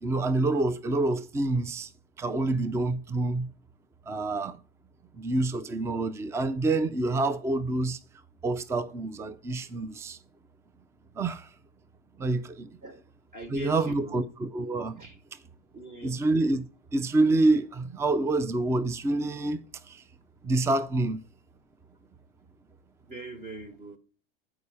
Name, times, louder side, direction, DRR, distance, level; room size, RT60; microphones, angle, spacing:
voice 1, 0.0-1.9 2.2-3.5 4.1-4.6 5.2-8.0 8.4-10.2 11.2-11.5 12.2-12.8 13.5-15.0 16.0-16.7 16.9-20.0 20.4-21.2, right 2 dB, 10° right, 0.4 m, -27 dB
voice 2, 13.3-14.2 15.0-15.2 15.7-16.2 23.0-24.0, right 2 dB, 30° right, 1.3 m, -41 dB
8.4 x 4.7 x 6.9 m
supercardioid pair, 120°, 30 cm